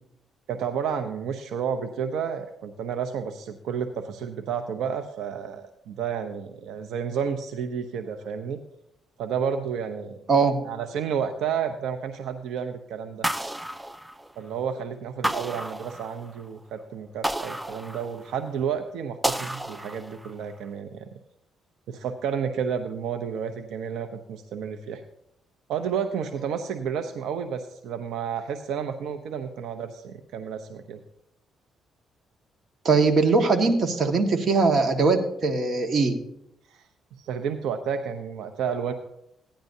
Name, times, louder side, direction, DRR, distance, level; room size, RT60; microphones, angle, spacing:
voice 1, 0.5-8.6 9.2-10.2 10.6-13.3 14.4-21.1 21.9-25.0 25.7-31.0 36.7-36.8 37.2-38.9, right 7 dB, 80° right, 7 dB, 0.7 m, -31 dB
sound 1, 13.2-14.6 15.2-16.4 17.2-18.5 19.2-20.4, right 1 dB, 10° right, 0.4 m, -31 dB
voice 2, 32.8-36.1, right 4 dB, 50° right, 4 dB, 1.6 m, -21 dB
16.0 x 10.0 x 2.7 m, 0.76 s
cardioid pair, 90°, 0 cm